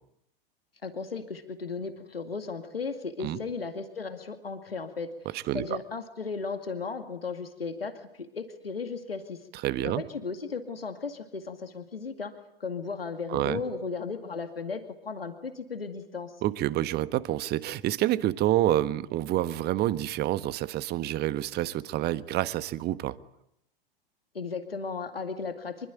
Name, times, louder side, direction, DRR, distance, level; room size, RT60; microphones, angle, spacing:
voice 1, 0.8-5.1 5.5-9.4 9.8-16.4 24.3-25.9, left 4 dB, 85° left, 7 dB, 2.3 m, -35 dB
voice 2, 5.3-5.8 9.5-10.0 13.3-13.6 16.4-23.2, right 14 dB, 35° right, 15 dB, 1.4 m, -28 dB
25.5 x 23.0 x 9.4 m, 0.76 s
figure-of-eight pair, 95°, 29 cm